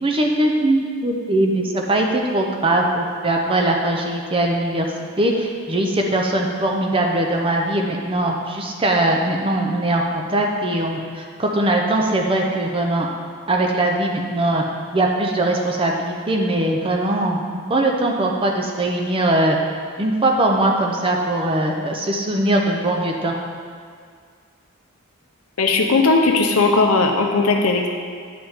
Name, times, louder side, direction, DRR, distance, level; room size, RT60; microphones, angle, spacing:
voice 1, 0.0-4.9 5.2-13.1 13.5-14.6 14.9-17.4 17.7-19.6 20.0-23.3, right 1 dB, 25° right, 1 dB, 0.6 m, -21 dB
voice 2, 25.6-27.9, left 3 dB, 80° left, 3 dB, 0.8 m, -17 dB
10.0 x 5.1 x 3.5 m, 2.1 s
head